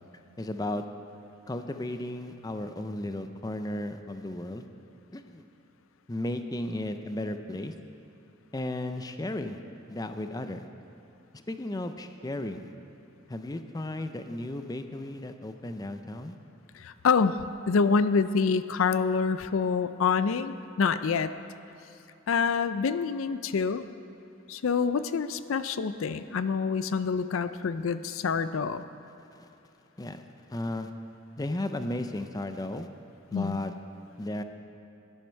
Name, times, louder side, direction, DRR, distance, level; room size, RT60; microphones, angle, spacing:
voice 1, 0.4-0.8 1.5-4.7 5.1-5.4 6.1-7.7 8.5-9.6 9.9-10.7 11.5-12.7 13.3-16.4 29.3-29.5 30.0-30.2 30.5-30.9 31.4-32.9 33.3-33.7 34.2-34.4, left 1 dB, 20° left, 8 dB, 0.5 m, -34 dB
voice 2, 16.7-17.4 17.7-21.3 22.3-23.8 24.5-28.8 33.3-33.6, left 5 dB, 75° left, 12 dB, 0.4 m, -26 dB
17.0 x 11.0 x 4.5 m, 2.8 s
head